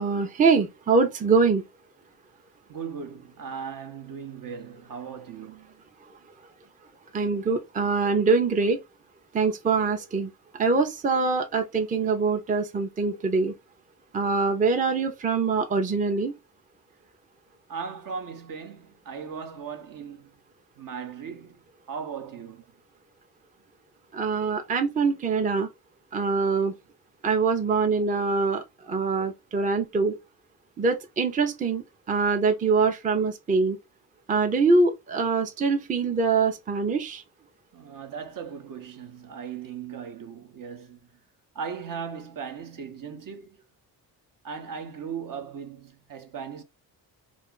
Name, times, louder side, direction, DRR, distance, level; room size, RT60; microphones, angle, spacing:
voice 1, 0.0-1.6 7.1-8.8 9.3-13.5 14.1-16.3 24.1-25.7 26.1-26.7 27.2-30.2 30.8-33.8 34.3-37.2, right 4 dB, 20° right, 0.5 m, -24 dB
voice 2, 2.7-5.8 17.7-20.3 20.8-22.6 37.7-41.0 41.5-43.6 44.4-46.6, right 6 dB, 55° right, 0.8 m, -38 dB
2.5 x 2.4 x 3.7 m
cardioid pair, 75°, 40 cm